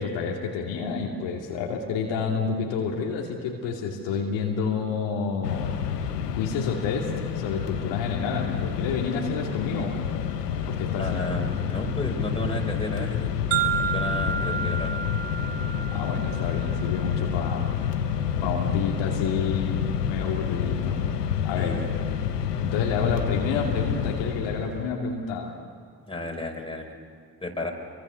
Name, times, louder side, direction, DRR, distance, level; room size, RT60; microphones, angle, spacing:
voice 1, 0.0-5.7 6.3-10.0 10.6-11.3 14.4-14.6 15.9-17.7 18.4-21.0 21.4-21.8 22.6-25.5, left 5 dB, 70° left, 0 dB, 2.6 m, -29 dB
Mechanisms, 5.4-24.9, left 8 dB, 90° left, 1.2 m, -29 dB
voice 2, 11.0-13.4 13.9-15.0 21.6-21.8 26.1-26.9 27.4-27.7, left 1 dB, 10° left, 1 dB, 5.2 m, -33 dB
sound 1, 13.5-17.5, right 7 dB, 75° right, 1.8 m, -31 dB
27.0 x 24.0 x 6.8 m, 2.1 s
hypercardioid pair, 45°, 46 cm